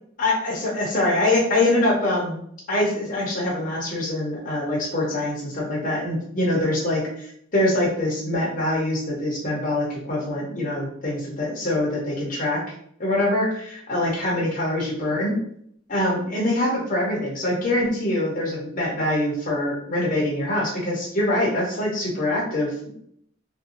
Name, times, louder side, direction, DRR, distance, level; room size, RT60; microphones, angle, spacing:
voice 1, 0.2-2.4 2.7-7.0 7.5-12.6 13.0-15.4 15.9-22.9, left 1 dB, 45° left, -4 dB, 0.7 m, -24 dB
2.5 x 2.2 x 2.7 m, 0.68 s
head